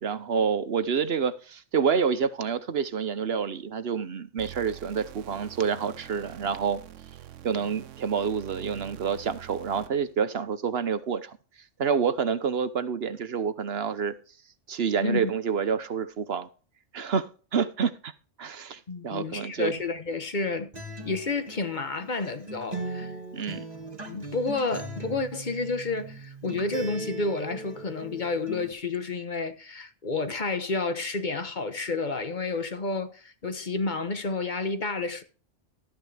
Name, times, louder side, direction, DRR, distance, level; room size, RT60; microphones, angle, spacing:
voice 1, 0.0-6.8 7.4-11.4 11.8-14.1 14.7-16.5 16.9-18.1 18.4-19.7 23.3-23.7, right 6 dB, 55° right, 1.0 m, -28 dB
sound 1, 4.4-10.1, right 12 dB, 85° right, 1.0 m, -45 dB
voice 2, 18.9-20.7 21.0-23.1 24.0-35.2, left 3 dB, 40° left, 1.2 m, -30 dB
Acoustic guitar, 20.7-28.7, right 2 dB, 35° right, 2.3 m, -39 dB
13.5 x 9.3 x 3.4 m
omnidirectional pair, 1.3 m